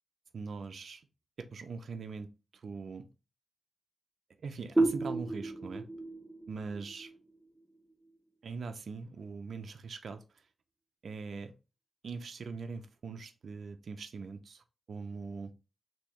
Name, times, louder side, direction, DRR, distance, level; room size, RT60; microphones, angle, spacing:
voice 1, 0.3-1.0 1.4-3.1 4.4-5.9 6.5-7.1 8.4-10.4 11.0-11.5 12.0-15.5, right 4 dB, 60° right, 0.4 m, -42 dB
sound 1, 4.8-8.2, right 2 dB, 5° right, 0.5 m, -33 dB
3.0 x 2.6 x 3.5 m
cardioid pair, 100°, 0 cm